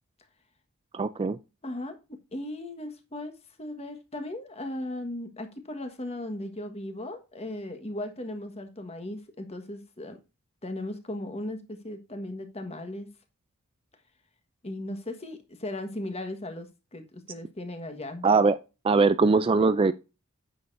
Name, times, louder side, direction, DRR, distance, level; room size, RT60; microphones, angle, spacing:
voice 1, 0.9-1.4 18.2-18.6 18.8-19.9, right 4 dB, 25° right, 0.3 m, -21 dB
voice 2, 1.6-2.0 2.3-10.2 10.6-13.1 14.6-18.3, left 1 dB, 30° left, 1.4 m, -37 dB
9.3 x 6.6 x 2.6 m
head